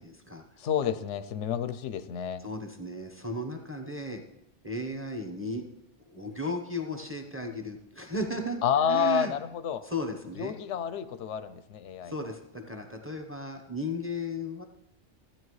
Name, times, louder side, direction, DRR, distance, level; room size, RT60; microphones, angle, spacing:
voice 1, 0.0-0.4 2.4-4.2 4.6-5.7 6.1-9.4 9.8-10.5 12.0-14.6, left 1 dB, 10° right, 3 dB, 0.8 m, -35 dB
voice 2, 0.6-2.4 8.6-9.8 10.4-12.1, left 8 dB, 85° left, 12 dB, 0.9 m, -29 dB
14.5 x 9.0 x 3.2 m, 0.84 s
omnidirectional pair, 1.2 m